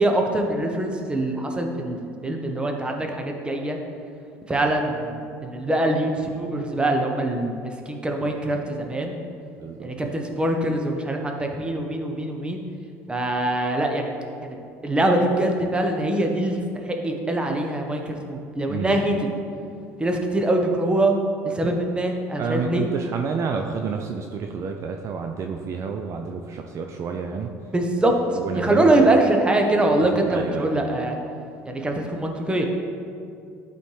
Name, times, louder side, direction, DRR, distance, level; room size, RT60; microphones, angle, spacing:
voice 1, 0.0-2.0 2.2-3.8 4.5-9.2 9.8-12.6 13.1-14.1 14.4-14.6 14.8-16.6 16.9-19.1 20.0-21.2 21.4-22.9 27.7-28.1 28.5-31.2 31.6-32.6, right 1 dB, 15° right, 2 dB, 1.0 m, -23 dB
voice 2, 9.6-9.9 18.7-19.0 22.4-27.5 28.4-29.1 30.3-30.8, right 5 dB, 50° right, 4 dB, 0.5 m, -29 dB
11.5 x 4.2 x 3.3 m, 2.5 s
supercardioid pair, 90°, 7 cm